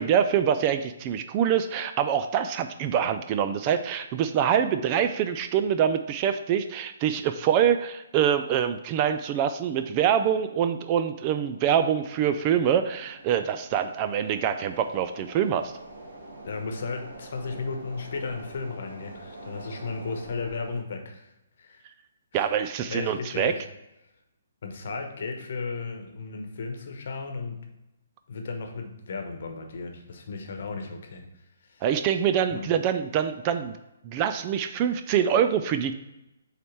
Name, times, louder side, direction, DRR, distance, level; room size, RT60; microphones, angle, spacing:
voice 1, 0.0-15.7 22.3-23.5 31.8-33.8 34.0-36.0, right 9 dB, 30° right, 9 dB, 0.4 m, -25 dB
sound 1, 9.7-20.8, right 2 dB, 60° right, 1.3 m, -47 dB
voice 2, 16.4-21.3 21.6-21.8 22.3-22.5 22.8-23.6 24.6-27.6 28.3-31.2 31.6-31.8 32.5-32.7, left 4 dB, 50° left, 4 dB, 1.0 m, -35 dB
7.6 x 3.2 x 4.6 m, 0.92 s
figure-of-eight pair, 130°, 0 cm